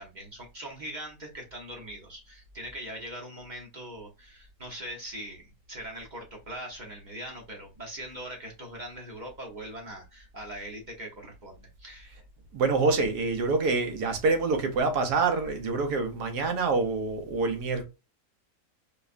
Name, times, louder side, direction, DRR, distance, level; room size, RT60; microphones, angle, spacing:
voice 1, 0.0-12.2, right 1 dB, 35° right, 0.8 m, -41 dB
voice 2, 12.5-17.8, right 3 dB, 80° right, 1.4 m, -26 dB
4.7 x 2.3 x 2.4 m
omnidirectional pair, 1.7 m